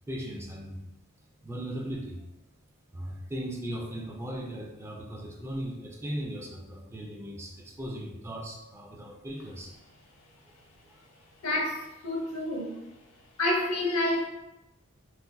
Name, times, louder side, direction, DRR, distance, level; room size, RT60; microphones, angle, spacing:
voice 1, 0.1-0.8 1.4-2.2 2.9-9.7, right 1 dB, 10° right, 1 dB, 0.3 m, -37 dB
voice 2, 11.4-12.8 13.4-14.3, left 1 dB, 85° left, 0 dB, 0.7 m, -28 dB
3.8 x 2.4 x 2.2 m, 0.95 s
head